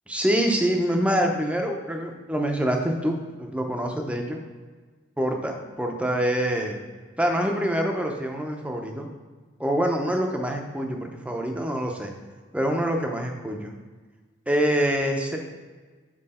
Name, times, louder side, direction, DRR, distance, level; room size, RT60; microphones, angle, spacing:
voice 1, 0.1-4.4 5.2-6.8 7.2-9.1 9.6-12.1 12.5-13.7 14.5-15.4, equal, 5° right, 3 dB, 0.7 m, -25 dB
7.7 x 4.4 x 4.3 m, 1.4 s
head